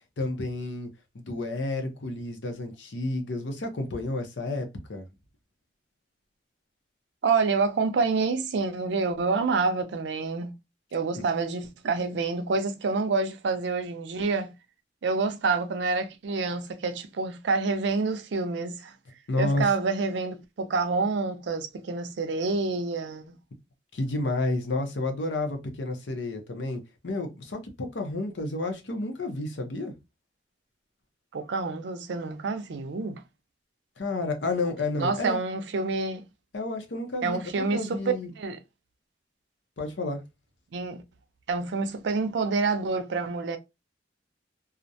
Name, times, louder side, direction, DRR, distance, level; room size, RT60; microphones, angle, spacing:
voice 1, 0.2-0.9 1.1-5.0 11.1-11.2 19.3-19.6 23.9-29.9 34.0-35.4 36.5-38.3 39.8-40.2, left 2 dB, 85° left, 0.7 m, -31 dB
voice 2, 7.2-10.5 10.9-14.5 15.0-18.9 19.4-23.4 31.3-33.2 35.0-36.2 37.2-38.0 38.4-38.6 40.7-41.0 41.5-43.6, right 4 dB, 80° right, 0.4 m, -27 dB
2.4 x 2.1 x 2.6 m
head